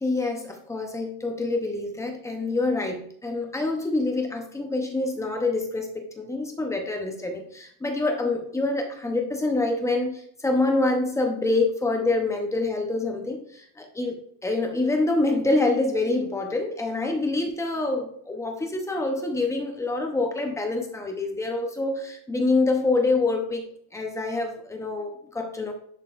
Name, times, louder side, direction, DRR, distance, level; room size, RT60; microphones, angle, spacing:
voice 1, 0.0-23.6 23.9-25.7, left 2 dB, 5° left, 3 dB, 0.7 m, -26 dB
10.5 x 3.9 x 2.5 m, 0.63 s
cardioid pair, 160°, 41 cm